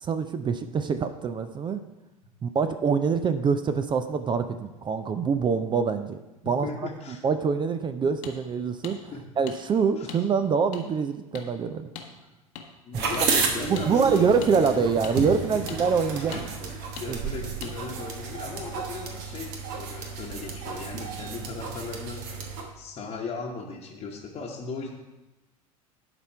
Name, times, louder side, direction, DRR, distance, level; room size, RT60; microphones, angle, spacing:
voice 1, 0.0-1.8 2.4-6.2 6.4-6.7 7.1-9.0 9.4-11.9 12.9-13.0 13.7-16.4 17.1-17.2, right 5 dB, 25° right, 10 dB, 0.5 m, -25 dB
voice 2, 6.4-7.2 9.1-9.3 10.0-10.1 12.8-14.9 15.5-15.8 16.1-22.2 22.7-24.9, left 4 dB, 35° left, -3 dB, 1.1 m, -37 dB
sound 1, 8.2-8.4 8.8-9.0 9.5-9.6 10.1-10.2 10.7-10.8 11.3-11.5 12.0-12.1 12.6-12.7 13.1-13.3 13.8-13.9 14.4-14.5 15.0-15.2 15.7-15.8 16.3-16.4 17.0-17.1 17.6-17.7, left 7 dB, 60° left, 1.1 m, -39 dB
sound 2, 12.9-22.6, right 5 dB, 60° right, 1.3 m, -32 dB
11.0 x 4.3 x 4.4 m, 1.0 s
figure-of-eight pair, 75°, 18 cm